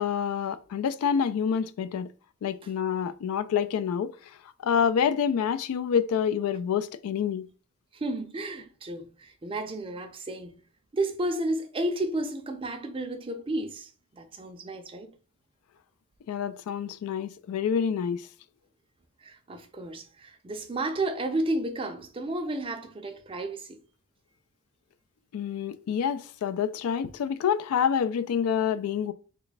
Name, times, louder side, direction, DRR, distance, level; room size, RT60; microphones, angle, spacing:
voice 1, 0.0-2.1 2.4-4.1 4.6-7.5 16.3-18.3 25.3-29.1, left 7 dB, 80° left, 0.3 m, -27 dB
voice 2, 7.9-10.6 10.9-15.1 19.2-23.8, right 1 dB, 25° right, 0.4 m, -32 dB
3.1 x 2.2 x 4.0 m
head